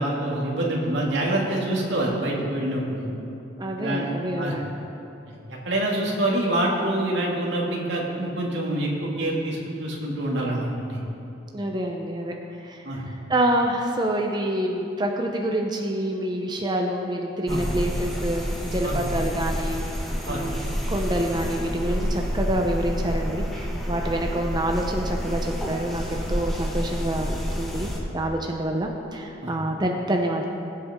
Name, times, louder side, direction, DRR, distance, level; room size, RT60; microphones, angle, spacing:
voice 1, 0.0-3.1 3.8-4.6 5.3-11.0 12.8-13.0 17.5-17.7 18.8-19.0 20.3-20.5 29.4-29.5, right 1 dB, 70° right, -3 dB, 2.3 m, -26 dB
voice 2, 3.6-4.6 11.5-12.3 12.6-19.8 20.3-30.5, right 1 dB, 25° right, 1 dB, 0.7 m, -27 dB
sound 1, 17.5-28.0, equal, ahead, 1.4 m, -29 dB
21.0 x 8.1 x 3.7 m, 2.8 s
head